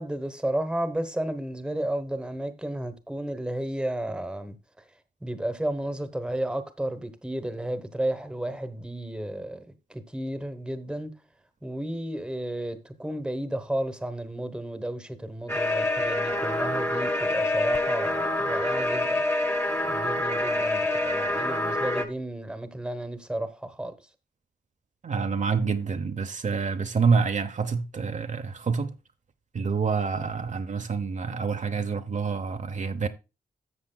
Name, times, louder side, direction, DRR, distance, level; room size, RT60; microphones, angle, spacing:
voice 1, 0.0-4.6 5.2-9.6 9.9-11.1 11.6-19.2 19.9-23.9, right 1 dB, 5° right, 1.0 m, -32 dB
sound 1, 15.5-22.0, left 1 dB, 15° left, 1.2 m, -26 dB
voice 2, 25.0-28.9 29.5-33.1, right 5 dB, 50° right, 0.7 m, -27 dB
13.5 x 7.5 x 2.2 m
wide cardioid pair, 165°, 16 cm